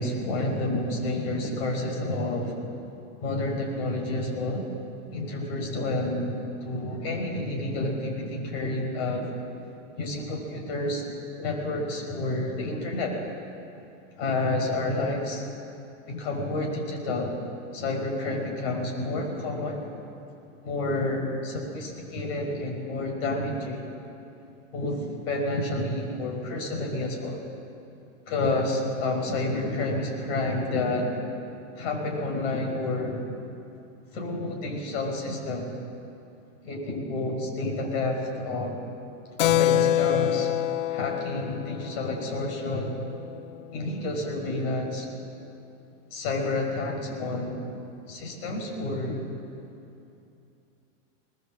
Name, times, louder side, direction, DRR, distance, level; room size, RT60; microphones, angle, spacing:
voice 1, 0.0-2.6 3.2-4.7 5.1-6.3 6.6-9.3 10.0-11.0 11.4-13.2 14.2-15.4 16.1-17.4 17.7-19.8 20.6-23.8 24.7-27.4 28.3-31.1 31.8-33.2 34.1-35.7 36.6-38.8 39.4-40.5 40.9-42.9 43.7-45.1 46.1-47.6 48.1-49.2, left 2 dB, 55° left, 1 dB, 5.4 m, -29 dB
Keyboard (musical), 39.4-43.5, left 13 dB, 90° left, 0.6 m, -26 dB
21.0 x 20.0 x 7.7 m, 2.7 s
supercardioid pair, 155°, 37 cm